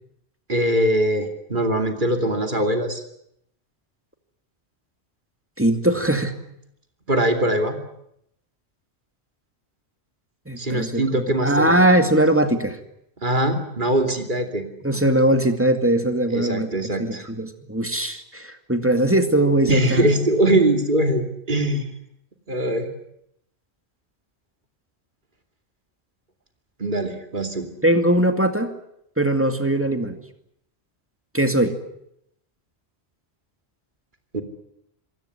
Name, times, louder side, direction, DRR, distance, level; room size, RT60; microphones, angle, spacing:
voice 1, 0.5-3.0 7.1-7.8 10.6-11.7 13.2-14.6 16.3-17.3 19.7-21.8 22.5-22.9 26.8-27.7 34.3-34.4, right 1 dB, 45° right, 5 dB, 2.9 m, -22 dB
voice 2, 5.6-6.4 10.5-12.8 14.8-16.7 17.0-20.1 27.8-28.7 29.2-30.2 31.3-31.8, right 1 dB, 10° right, 7 dB, 2.2 m, -20 dB
26.5 x 16.5 x 9.9 m, 0.76 s
omnidirectional pair, 1.1 m